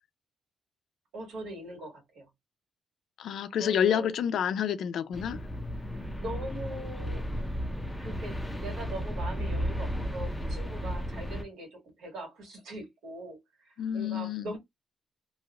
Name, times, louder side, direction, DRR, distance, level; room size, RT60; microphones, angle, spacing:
voice 1, 1.1-2.3 3.6-4.1 5.8-7.3 7.8-14.6, right 1 dB, 80° right, 1.8 m, -42 dB
voice 2, 3.2-5.4 13.8-14.5, left 8 dB, 60° left, 0.4 m, -28 dB
sound 1, 5.1-11.4, equal, ahead, 0.4 m, -34 dB
3.1 x 2.4 x 2.4 m
cardioid pair, 180°, 0 cm